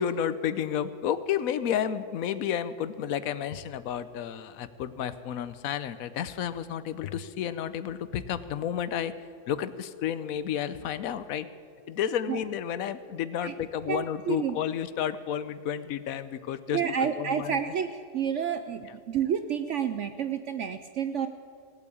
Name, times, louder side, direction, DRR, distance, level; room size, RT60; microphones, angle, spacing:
voice 1, 0.0-9.1 9.5-11.5 11.9-16.8 17.2-17.6, left 9 dB, 65° left, 14 dB, 1.0 m, -31 dB
voice 2, 13.9-14.6 16.7-21.3, right 8 dB, 70° right, 9 dB, 0.7 m, -30 dB
17.5 x 8.4 x 8.5 m, 2.2 s
omnidirectional pair, 1.8 m